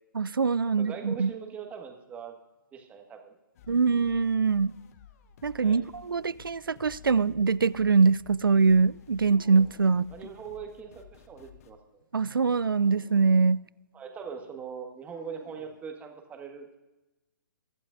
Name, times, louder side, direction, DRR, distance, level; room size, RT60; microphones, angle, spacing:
voice 1, 0.1-1.3 3.7-4.8 5.4-10.1 12.1-13.6, right 4 dB, 85° right, 0.4 m, -23 dB
voice 2, 0.8-2.4 2.7-3.3 5.6-5.8 10.1-12.0 13.9-16.8, right 6 dB, 15° right, 1.6 m, -41 dB
sound 1, 3.5-11.7, left 8 dB, 45° left, 1.0 m, -54 dB
Dog, 9.2-10.2 12.1-13.6 15.1-15.8, left 3 dB, 20° left, 2.8 m, -54 dB
23.0 x 11.5 x 2.6 m
figure-of-eight pair, 135°, 11 cm